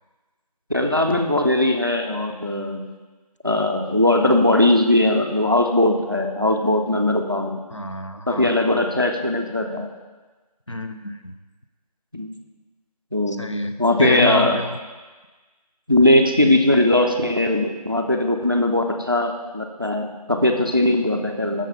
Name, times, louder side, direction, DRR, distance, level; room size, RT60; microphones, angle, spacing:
voice 1, 0.7-2.8 3.4-7.6 8.3-9.9 12.1-12.3 13.1-13.4 13.8-14.6 15.9-21.7, left 1 dB, 35° right, 4 dB, 0.4 m, -19 dB
voice 2, 7.7-8.5 10.7-11.3 13.4-14.8 19.8-19.9, left 1 dB, 50° left, 6 dB, 0.4 m, -28 dB
6.6 x 6.2 x 3.9 m, 1.3 s
figure-of-eight pair, 175°, 21 cm